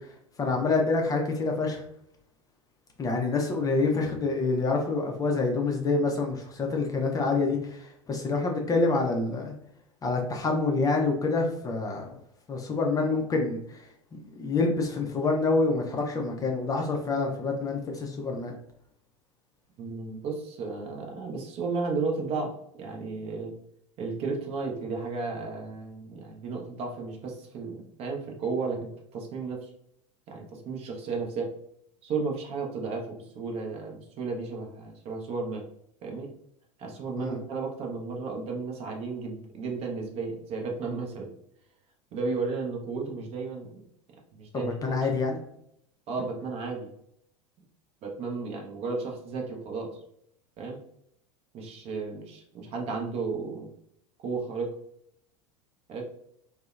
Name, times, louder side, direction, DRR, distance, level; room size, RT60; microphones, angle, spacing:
voice 1, 0.4-1.8 3.0-9.5 10.0-12.1 12.5-13.9 14.1-18.5 37.2-37.4 44.5-45.4, left 3 dB, 20° left, 1 dB, 0.4 m, -27 dB
voice 2, 19.8-22.5 22.8-23.5 24.0-29.7 30.3-31.5 32.0-35.6 36.0-36.3 36.8-41.3 42.1-43.8 44.4-45.2 46.1-46.9 48.0-50.0 50.6-50.8 51.5-53.7 54.2-54.7 55.9-56.0, right 4 dB, 40° right, 1 dB, 0.6 m, -33 dB
2.7 x 2.0 x 2.3 m, 0.73 s
figure-of-eight pair, 80°, 17 cm